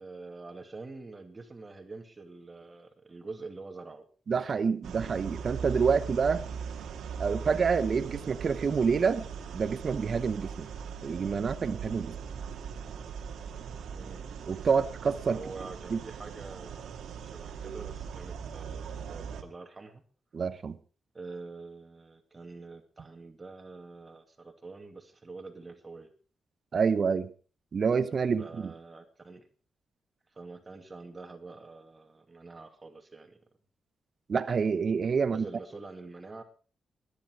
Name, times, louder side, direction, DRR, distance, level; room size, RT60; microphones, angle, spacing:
voice 1, 0.0-4.1 13.9-14.3 15.3-20.0 21.1-26.1 28.4-29.5 30.3-33.4 35.2-36.4, right 3 dB, 30° right, 2.5 m, -46 dB
voice 2, 4.3-6.4 7.2-9.2 9.5-10.7 11.0-12.1 14.5-15.4 15.9-16.0 20.3-20.8 26.7-27.3 27.7-28.7 34.3-35.4, right 5 dB, 55° right, 0.9 m, -27 dB
sound 1, 4.8-19.4, right 6 dB, 85° right, 1.8 m, -40 dB
20.5 x 10.5 x 4.8 m
cardioid pair, 65°, 0 cm